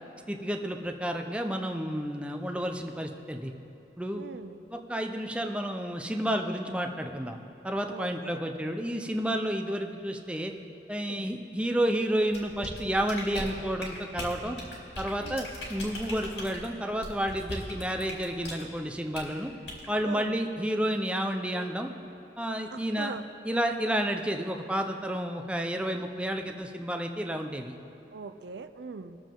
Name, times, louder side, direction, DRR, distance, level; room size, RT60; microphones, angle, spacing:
voice 1, 0.3-3.5 4.0-4.2 4.7-7.4 7.6-10.5 10.9-14.6 15.0-19.5 19.9-21.9 22.4-23.1 23.4-27.7, equal, 5° right, 4 dB, 0.6 m, -31 dB
voice 2, 4.2-4.6 7.9-8.4 11.1-11.3 15.2-15.5 20.0-20.4 22.7-23.2 28.1-29.2, right 4 dB, 70° right, 10 dB, 0.4 m, -41 dB
sound 1, 12.3-18.6 19.1-19.3 19.7-19.9, left 1 dB, 75° left, 2.5 m, -39 dB
21.0 x 7.2 x 3.8 m, 2.9 s
head